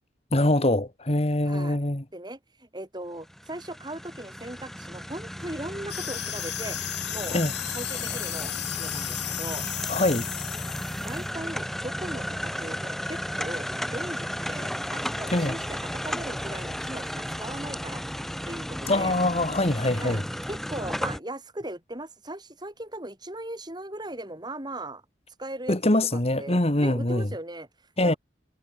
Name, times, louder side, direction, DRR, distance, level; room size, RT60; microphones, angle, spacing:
voice 1, 0.3-2.0 7.3-7.5 9.9-10.2 15.3-15.5 18.9-20.2 25.7-27.3 28.0-28.1, left 1 dB, 35° left, 1.9 m, -23 dB
voice 2, 1.4-1.8 2.1-7.4 7.7-9.6 11.0-18.0 18.5-19.1 20.0-25.0 25.4-25.8 26.1-27.7 28.0-28.2, right 1 dB, 25° right, 5.4 m, -38 dB
sound 1, 3.2-21.2, equal, ahead, 1.0 m, -34 dB
sound 2, 5.9-11.3, left 14 dB, 65° left, 2.7 m, -34 dB
head